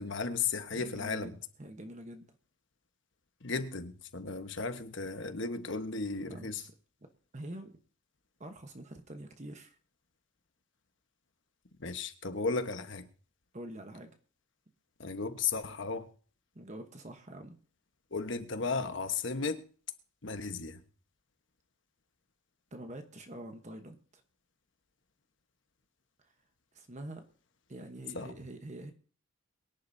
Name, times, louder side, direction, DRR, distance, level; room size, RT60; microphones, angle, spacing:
voice 1, 0.0-1.3 3.4-6.6 11.8-13.1 15.0-16.1 18.1-19.6 20.2-20.8 28.1-28.3, left 4 dB, 60° left, 1.3 m, -35 dB
voice 2, 0.7-2.3 6.3-6.5 7.3-7.8 8.4-9.8 13.5-14.1 16.5-17.6 22.7-24.0 26.2-26.3 26.7-27.2 27.7-28.9, right 1 dB, 35° right, 1.1 m, -45 dB
23.0 x 10.5 x 2.8 m
head